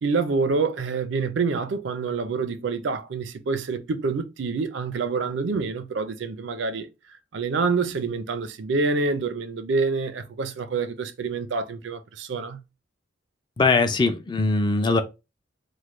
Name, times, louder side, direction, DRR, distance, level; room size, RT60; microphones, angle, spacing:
voice 1, 0.0-6.9 7.3-12.6, right 4 dB, 70° right, 0.4 m, -27 dB
voice 2, 13.6-15.0, left 3 dB, 25° left, 0.4 m, -21 dB
3.2 x 2.1 x 3.0 m
head